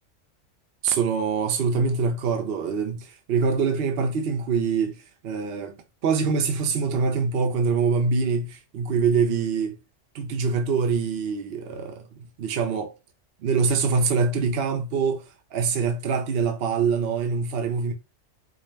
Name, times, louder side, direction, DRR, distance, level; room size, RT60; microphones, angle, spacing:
voice 1, 0.8-5.8 6.0-9.8 10.1-12.1 12.4-12.9 13.4-15.2 15.5-17.9, right 5 dB, 60° right, 0.7 m, -24 dB
4.9 x 2.1 x 3.1 m
omnidirectional pair, 1.3 m